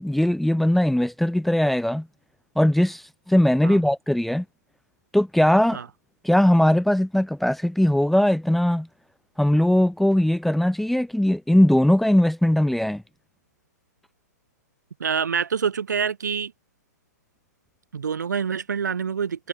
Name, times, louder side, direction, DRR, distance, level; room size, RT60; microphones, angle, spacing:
voice 1, 0.0-2.1 2.6-4.4 5.1-5.8 6.2-8.9 9.4-13.0, left 1 dB, ahead, 0.9 m, -20 dB
voice 2, 15.0-16.5 17.9-19.5, right 6 dB, 75° right, 4.3 m, -26 dB
hypercardioid pair, 125°, 10 cm